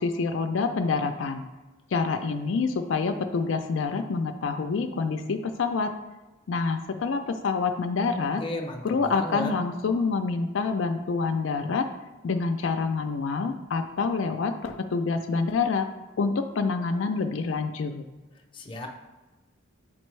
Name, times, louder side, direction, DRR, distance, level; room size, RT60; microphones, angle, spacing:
voice 1, 0.0-1.4 1.9-5.9 6.5-8.4 8.8-11.9 12.2-15.9 16.2-18.0, left 4 dB, 70° left, 6 dB, 0.4 m, -27 dB
voice 2, 8.1-9.5 18.5-18.9, left 1 dB, 25° left, 1 dB, 0.6 m, -35 dB
7.3 x 4.4 x 3.2 m, 1.1 s
head